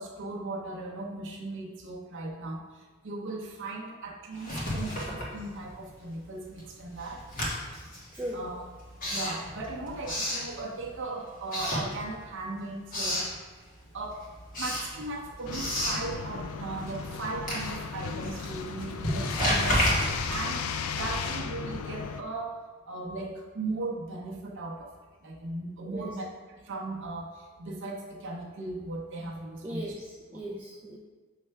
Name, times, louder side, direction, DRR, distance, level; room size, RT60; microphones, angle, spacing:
voice 1, 0.0-2.6 3.0-7.2 8.3-8.6 9.1-13.3 13.9-14.2 14.6-19.9 20.3-20.6 20.9-22.6 22.9-24.9 25.2-29.8, right 2 dB, 60° right, -1 dB, 0.7 m, -37 dB
Writing, 4.3-5.9 6.2-11.0 11.4-12.4 12.7-13.4 13.8-21.4, left 1 dB, 40° left, 1.5 m, -32 dB
voice 2, 8.1-8.4 25.8-26.2 29.6-31.0, equal, 10° right, -4 dB, 0.5 m, -38 dB
sound 1, 15.5-22.2, left 6 dB, 75° left, 0.4 m, -36 dB
6.6 x 3.2 x 4.6 m, 1.3 s
head